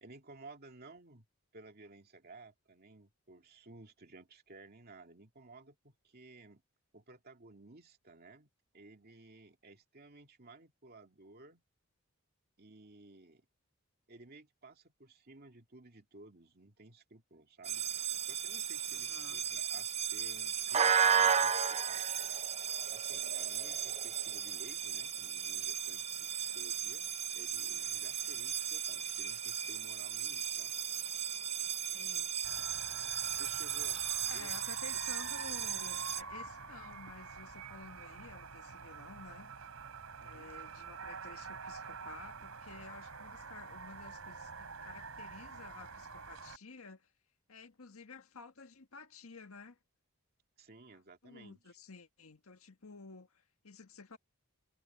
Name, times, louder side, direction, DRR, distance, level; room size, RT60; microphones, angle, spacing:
voice 1, 0.0-1.3 1.5-6.6 6.9-11.6 12.6-13.5 14.1-17.8 18.2-22.0 22.9-30.7 33.3-34.1 34.3-34.5 40.2-40.5 50.6-51.7, right 2 dB, 45° right, 2.5 m, -56 dB
sound 1, 17.6-36.2, right 8 dB, 30° right, 0.7 m, -35 dB
voice 2, 18.9-19.4 31.9-32.3 34.3-39.5 40.2-47.1 47.5-49.8 51.2-54.2, left 4 dB, 80° left, 1.6 m, -52 dB
sound 2, 32.4-46.6, right 5 dB, 80° right, 3.4 m, -47 dB
head